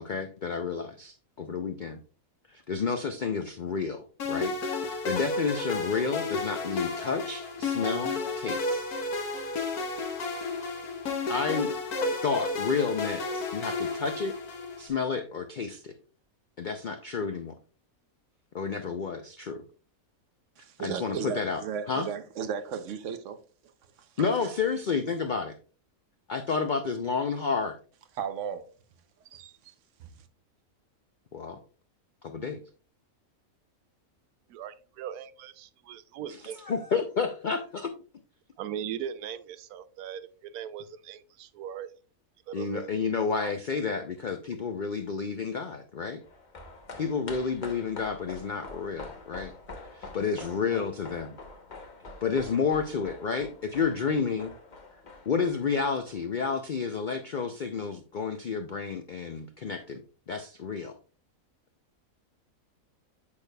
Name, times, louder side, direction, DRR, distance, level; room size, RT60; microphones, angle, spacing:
voice 1, 0.0-2.0 2.5-4.0 4.3-4.5 4.9-8.9 11.3-11.7 12.2-14.3 14.8-15.9 16.6-17.5 18.5-19.6 20.8-21.6 21.9-22.1 24.2-25.5 26.3-27.8 31.3-31.6 32.2-32.6 36.6-37.9 42.5-46.2 47.0-49.5 49.9-51.4 52.2-54.5 55.3-60.0 60.3-60.9, left 5 dB, 70° left, 0.4 m, -30 dB
sound 1, 4.2-14.9, left 3 dB, 90° left, 1.5 m, -32 dB
voice 2, 20.6-23.4 24.2-24.6 28.2-28.7 29.3-29.7 30.0-30.1, right 7 dB, 65° right, 0.9 m, -35 dB
voice 3, 34.5-36.6 38.6-41.9 42.5-42.9 43.4-43.5, right 9 dB, 85° right, 1.1 m, -39 dB
sound 2, 46.2-56.8 57.1-57.2, left 3 dB, 35° left, 0.9 m, -46 dB
8.5 x 6.6 x 2.2 m
omnidirectional pair, 1.5 m